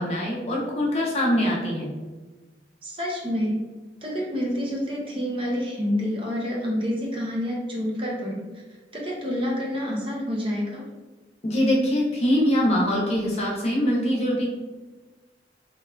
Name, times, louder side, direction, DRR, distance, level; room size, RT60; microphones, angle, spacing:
voice 1, 0.0-1.9 11.4-14.5, equal, 35° left, -3 dB, 0.6 m, -23 dB
voice 2, 2.8-3.6 4.0-8.6 8.9-10.8, equal, 30° right, -3 dB, 0.5 m, -28 dB
3.4 x 2.2 x 2.2 m, 1.2 s
head